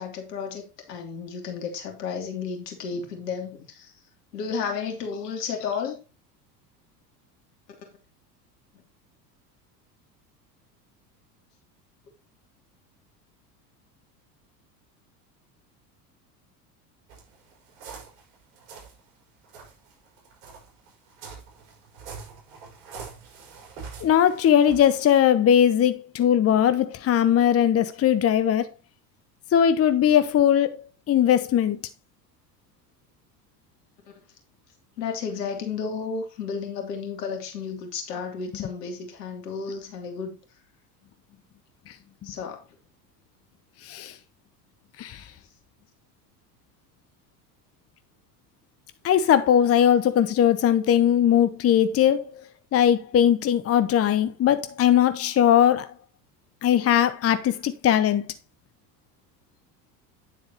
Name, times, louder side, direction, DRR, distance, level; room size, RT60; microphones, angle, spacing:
voice 1, 0.0-3.9 4.3-6.0 35.0-40.4 42.2-42.7, left 6 dB, 75° left, 3.0 m, -32 dB
sound 1, 17.1-19.0 19.4-25.2, right 5 dB, 65° right, 5.1 m, -44 dB
voice 2, 24.0-28.7 29.5-30.8 31.1-31.8 43.8-44.1 45.0-45.2 49.0-52.4 52.7-55.9 56.6-58.3, left 9 dB, 30° left, 0.8 m, -20 dB
9.7 x 8.0 x 2.9 m
hypercardioid pair, 75°, 49 cm